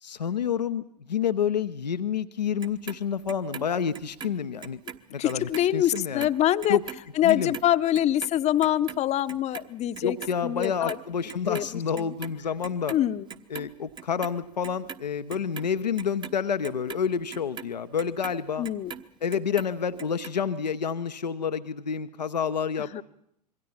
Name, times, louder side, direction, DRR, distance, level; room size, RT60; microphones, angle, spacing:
voice 1, 0.0-4.8 5.1-6.3 6.7-6.8 7.2-7.5 10.0-12.9 13.5-18.7 19.2-23.0, left 7 dB, 75° left, 11 dB, 0.8 m, -29 dB
Clock, 2.6-5.0 5.3-11.7 11.9-13.0 13.3-14.3 14.6-19.0 19.3-20.3 20.7-20.8, right 6 dB, 20° right, 1.1 m, -41 dB
voice 2, 5.2-6.8 7.2-10.2 10.4-11.0 11.5-12.1 12.9-13.3 18.6-18.9 22.8-23.0, left 12 dB, 30° left, 14 dB, 0.9 m, -25 dB
26.5 x 22.5 x 5.7 m, 0.76 s
figure-of-eight pair, 80°, 21 cm